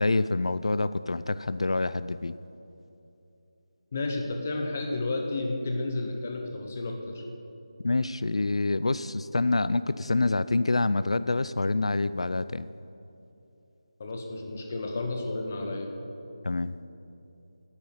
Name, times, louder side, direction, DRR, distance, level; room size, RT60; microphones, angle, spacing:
voice 1, 0.0-2.3 7.8-12.7 16.4-16.7, left 2 dB, 80° left, 14 dB, 0.4 m, -26 dB
voice 2, 3.9-7.2 14.0-15.9, left 2 dB, 20° left, 2 dB, 0.8 m, -32 dB
9.5 x 8.9 x 8.8 m, 2.9 s
figure-of-eight pair, 180°, 3 cm